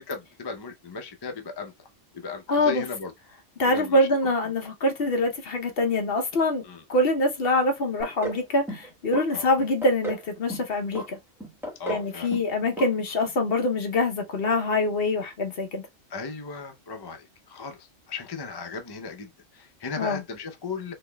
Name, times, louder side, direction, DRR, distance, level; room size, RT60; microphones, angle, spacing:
voice 1, 0.1-1.7 2.1-3.1 3.7-4.1 4.4-4.5 6.6-6.8 9.3-9.5 11.8-12.3 16.1-20.9, left 5 dB, 35° left, 0.4 m, -36 dB
voice 2, 2.5-2.8 3.6-6.6 6.9-11.2 11.9-15.9 20.0-20.2, left 2 dB, 55° left, 0.9 m, -24 dB
sound 1, 8.0-8.4 8.7-9.2 9.6-10.2 10.5-11.1 11.4-12.1 12.3-12.5 12.8-12.9 13.2-13.3, right 2 dB, ahead, 1.0 m, -33 dB
4.0 x 2.9 x 2.2 m
omnidirectional pair, 1.3 m